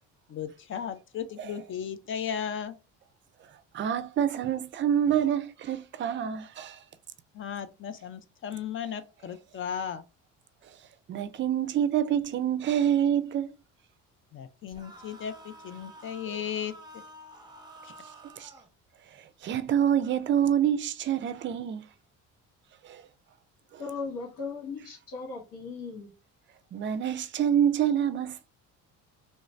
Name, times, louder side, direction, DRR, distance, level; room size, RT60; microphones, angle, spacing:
voice 1, 0.3-2.8 7.3-10.0 14.3-16.7, left 8 dB, 40° left, 0.4 m, -35 dB
voice 2, 3.7-6.8 11.1-13.5 16.3-16.4 18.4-18.5 19.4-21.8 22.8-23.0 26.7-28.5, right 9 dB, 35° right, 0.4 m, -27 dB
sound 1, 14.7-18.7, right 1 dB, 10° right, 0.8 m, -49 dB
voice 3, 23.8-26.1, left 4 dB, 75° left, 1.7 m, -37 dB
3.1 x 2.5 x 3.2 m
cardioid pair, 125°, 33 cm